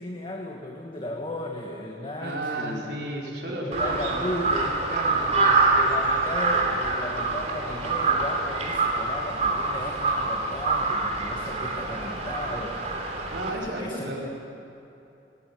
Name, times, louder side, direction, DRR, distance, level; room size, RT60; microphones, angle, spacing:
voice 1, 0.0-2.8 3.4-4.8 5.0-12.9 13.5-14.1, left 1 dB, 30° left, 1 dB, 1.6 m, -35 dB
voice 2, 2.2-4.4 4.6-5.9 13.3-14.3, right 1 dB, 70° right, -2 dB, 4.5 m, -34 dB
Crow, 3.7-13.5, right 3 dB, 40° right, 3.3 m, -25 dB
20.0 x 19.0 x 9.8 m, 2.9 s
head